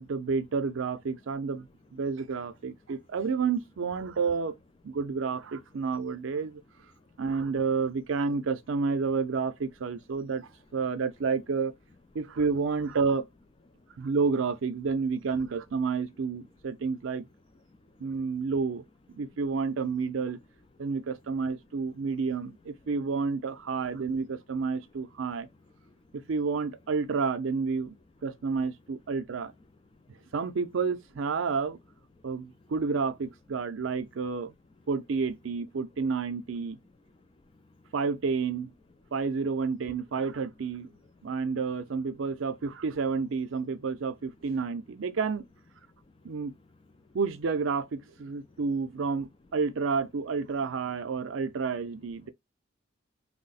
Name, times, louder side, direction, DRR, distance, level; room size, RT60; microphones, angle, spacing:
voice 1, 0.0-4.5 4.8-6.6 7.2-11.7 12.1-13.3 14.0-17.3 18.0-20.4 20.8-25.5 26.1-27.9 28.2-29.5 30.3-31.8 32.2-34.5 34.9-36.8 37.9-38.7 39.1-40.9 41.2-45.5 46.2-46.5 47.1-52.3, right 5 dB, 70° right, 0.5 m, -30 dB
voice 2, 13.8-14.1 17.7-18.4 25.8-26.2 29.9-30.3 32.2-32.7 37.4-37.9 41.0-41.3 46.1-46.6 46.9-47.2 48.4-48.6, left 2 dB, 25° left, 0.4 m, -61 dB
3.0 x 2.1 x 4.0 m
head